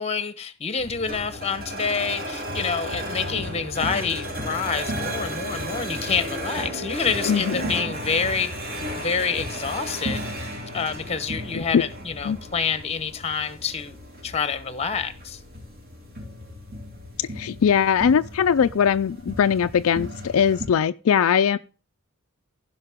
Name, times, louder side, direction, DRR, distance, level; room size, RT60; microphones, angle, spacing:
voice 1, 0.0-8.5 9.0-10.2 10.7-14.0 14.2-15.4, left 5 dB, 30° left, 0.9 m, -27 dB
sound 1, 0.8-20.6, equal, 40° right, 4.1 m, -34 dB
voice 2, 17.2-21.6, left 7 dB, 65° left, 0.4 m, -21 dB
15.5 x 5.4 x 3.6 m
head